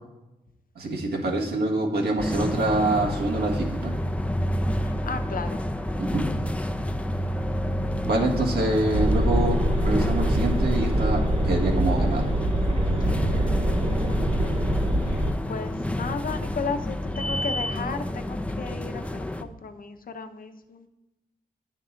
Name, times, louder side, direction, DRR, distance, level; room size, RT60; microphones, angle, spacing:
voice 1, 0.7-3.9 6.0-6.2 8.0-12.2, right 2 dB, 85° right, 1 dB, 1.5 m, -26 dB
sound 1, 2.2-19.4, left 1 dB, 10° left, 0.5 m, -29 dB
voice 2, 4.8-5.6 13.0-13.1 14.1-14.7 15.0-20.9, left 5 dB, 65° left, 7 dB, 0.8 m, -35 dB
sound 2, 8.9-15.3, right 1 dB, 40° right, 1.2 m, -24 dB
9.1 x 5.3 x 3.8 m, 0.97 s
cardioid pair, 65°, 16 cm